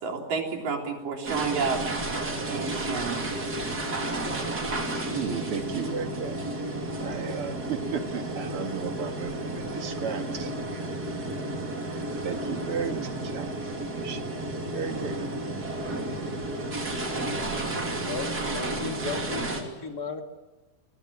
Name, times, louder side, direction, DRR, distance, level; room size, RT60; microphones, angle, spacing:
voice 1, 0.0-3.3, right 5 dB, 75° right, 2 dB, 5.3 m, -31 dB
sound 1, 1.2-19.6, right 2 dB, 30° right, 3.3 m, -32 dB
voice 2, 5.1-6.4 7.0-11.1 12.2-13.5 14.0-14.2 14.7-15.3, right 7 dB, 50° right, 6 dB, 2.2 m, -34 dB
voice 3, 18.1-20.2, left 4 dB, 30° left, 4 dB, 2.7 m, -35 dB
29.0 x 21.0 x 8.7 m, 1.1 s
omnidirectional pair, 3.8 m